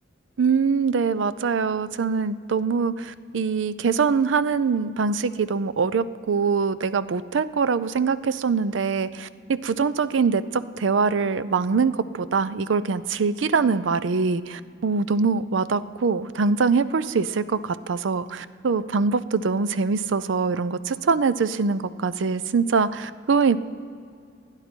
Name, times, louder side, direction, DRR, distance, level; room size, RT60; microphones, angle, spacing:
voice 1, 0.4-23.6, right 5 dB, 80° right, 15 dB, 0.5 m, -23 dB
28.0 x 9.7 x 4.5 m, 2.3 s
head